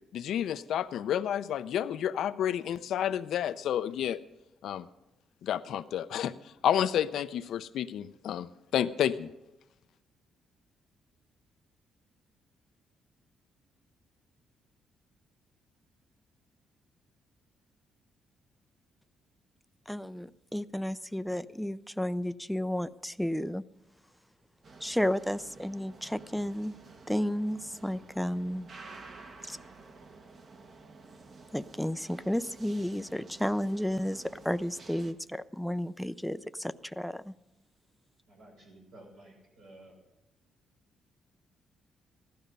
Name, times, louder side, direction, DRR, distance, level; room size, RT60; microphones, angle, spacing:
voice 1, 0.1-4.2 4.6-4.9 5.4-9.3, left 10 dB, 75° left, 12 dB, 0.6 m, -30 dB
voice 2, 19.9-23.6 24.8-26.7 27.1-28.7 29.4-29.6 31.5-37.3, equal, ahead, 13 dB, 0.5 m, -32 dB
sound 1, 24.6-35.1, right 3 dB, 50° right, 1.3 m, -51 dB
voice 3, 38.3-40.0, right 1 dB, 85° right, -2 dB, 6.2 m, -53 dB
15.5 x 12.0 x 5.3 m, 0.93 s
cardioid pair, 90°, 0 cm